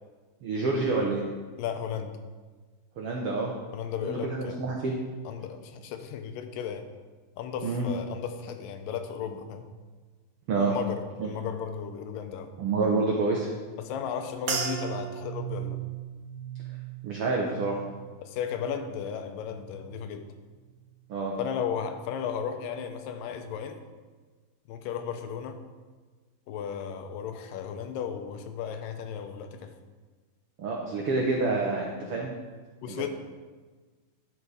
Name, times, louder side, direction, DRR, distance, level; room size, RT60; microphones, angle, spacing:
voice 1, 0.4-1.2 3.0-3.5 4.0-4.9 7.6-7.8 10.5-10.7 11.2-11.3 12.6-13.5 17.0-17.8 21.1-21.3 30.6-32.3, right 3 dB, 85° right, -1 dB, 1.2 m, -28 dB
voice 2, 1.6-2.2 3.7-4.6 5.3-6.9 7.4-9.7 10.6-12.5 13.8-15.8 18.2-20.3 21.4-23.8 24.7-25.6 26.5-29.7 32.8-33.1, left 7 dB, 85° left, 7 dB, 2.4 m, -35 dB
sound 1, 14.5-19.0 19.3-20.0 20.6-20.8, right 7 dB, 65° right, 2.1 m, -37 dB
12.0 x 4.7 x 4.9 m, 1.4 s
omnidirectional pair, 3.8 m